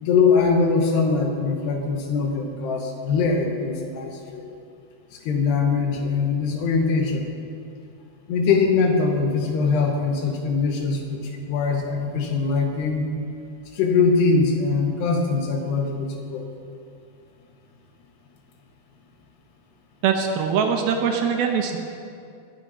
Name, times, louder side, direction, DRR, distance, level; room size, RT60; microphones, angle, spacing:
voice 1, 0.0-4.4 5.2-7.3 8.3-13.0 13.7-16.5, left 4 dB, 80° left, 2 dB, 3.3 m, -22 dB
voice 2, 20.0-21.8, right 6 dB, 75° right, 3 dB, 2.6 m, -22 dB
21.5 x 9.1 x 4.1 m, 2.4 s
omnidirectional pair, 4.8 m